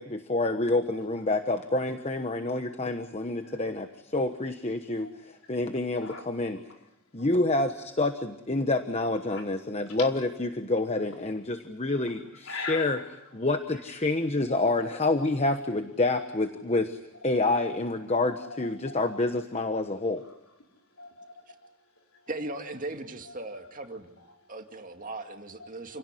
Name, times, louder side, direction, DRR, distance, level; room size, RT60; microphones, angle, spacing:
voice 1, 0.0-3.9 4.1-6.6 7.1-13.0 13.3-20.2, left 2 dB, 30° left, 7 dB, 1.1 m, -28 dB
voice 2, 3.4-3.9 4.2-4.3 4.7-5.6 6.0-6.2 6.5-7.7 8.0-8.1 9.3-9.4 9.8-10.1 10.9-11.1 12.4-13.1 14.5-15.1 17.2-19.3 20.2-22.6 23.2-23.8 24.2-24.8 25.5-26.0, left 3 dB, 75° left, 2 dB, 4.6 m, -44 dB
voice 3, 22.3-24.1 24.5-26.0, right 2 dB, 40° right, 5 dB, 2.4 m, -38 dB
29.0 x 17.5 x 9.9 m, 0.86 s
head